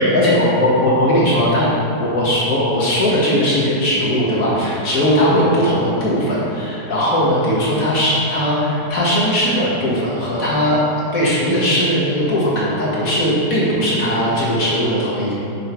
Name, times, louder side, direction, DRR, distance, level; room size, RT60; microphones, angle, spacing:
voice 1, 0.0-1.7 2.0-10.8 11.1-15.3, equal, 55° left, -8 dB, 2.2 m, -18 dB
6.6 x 5.4 x 4.5 m, 2.9 s
omnidirectional pair, 1.8 m